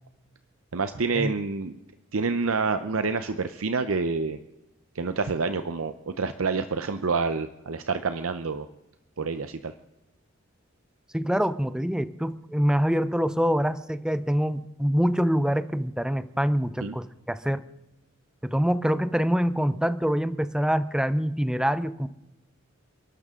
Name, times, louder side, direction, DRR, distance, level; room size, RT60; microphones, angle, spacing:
voice 1, 0.7-1.7 2.1-4.4 4.9-8.7 9.2-9.7 16.8-17.0, right 4 dB, 75° right, 10 dB, 0.7 m, -28 dB
voice 2, 11.1-17.7 18.4-22.1, equal, 5° right, 13 dB, 0.6 m, -25 dB
29.5 x 12.0 x 3.8 m, 0.93 s
head